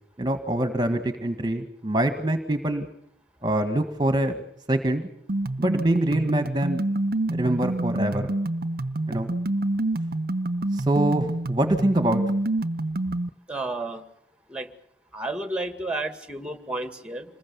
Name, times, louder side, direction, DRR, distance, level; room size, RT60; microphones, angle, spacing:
voice 1, 0.2-2.9 3.4-4.4 4.7-5.1 5.6-6.8 7.3-8.3 9.1-9.3 10.7-12.2, right 1 dB, 25° right, 8 dB, 1.7 m, -24 dB
sound 1, 5.3-13.3, right 2 dB, 55° right, 0.8 m, -27 dB
voice 2, 13.5-14.0 14.5-14.7 15.1-17.3, right 2 dB, 5° right, 9 dB, 2.2 m, -31 dB
27.0 x 20.5 x 7.0 m, 0.70 s
head